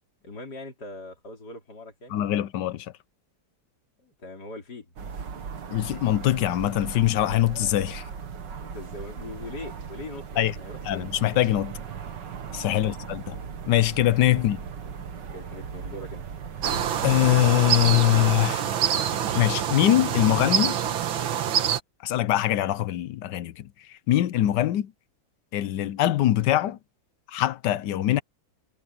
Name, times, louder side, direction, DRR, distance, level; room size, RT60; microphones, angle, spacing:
voice 1, 0.2-2.2 4.0-4.9 8.6-11.1 12.7-12.9 14.3-14.5 15.3-16.2, left 2 dB, 55° left, 4.7 m, -41 dB
voice 2, 2.1-2.9 5.7-8.1 10.4-10.5 10.8-11.8 12.5-13.4 13.7-14.6 17.0-18.6 19.3-20.8 22.0-24.9 25.5-26.8 27.3-28.2, left 14 dB, 70° left, 1.2 m, -23 dB
sound 1, 5.0-18.4, right 6 dB, 65° right, 2.1 m, -38 dB
sound 2, 16.6-21.8, right 9 dB, 85° right, 2.0 m, -26 dB
omnidirectional pair, 2.1 m